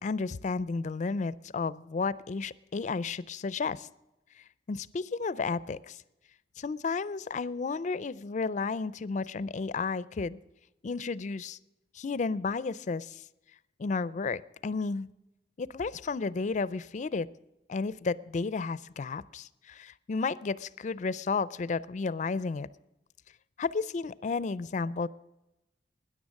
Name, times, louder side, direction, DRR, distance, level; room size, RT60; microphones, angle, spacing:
voice 1, 0.0-3.9 4.7-6.0 6.6-10.4 10.8-11.6 12.0-13.2 13.8-15.1 15.6-17.3 17.7-22.7 23.6-25.1, left 4 dB, 45° left, 19 dB, 0.4 m, -32 dB
13.5 x 10.0 x 6.4 m, 0.94 s
head